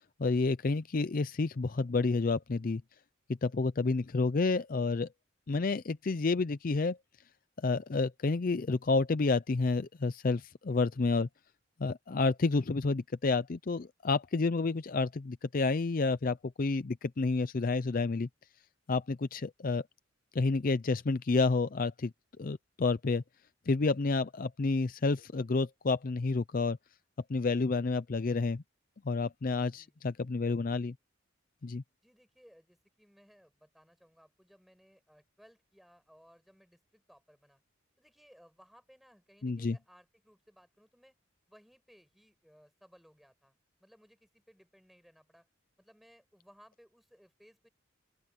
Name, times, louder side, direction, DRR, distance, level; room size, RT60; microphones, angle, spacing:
voice 1, 0.2-2.8 3.4-5.1 5.5-7.0 7.6-11.3 11.8-18.3 18.9-19.8 20.3-22.1 22.4-23.2 23.7-26.8 27.3-28.6 29.1-30.9 31.6-31.8 39.4-39.8, left 3 dB, 45° left, 0.5 m, -30 dB
voice 2, 29.5-30.0 32.0-37.6 38.0-41.2 41.5-43.5 43.8-45.5 45.8-47.7, equal, ahead, 6.5 m, -62 dB
open air
head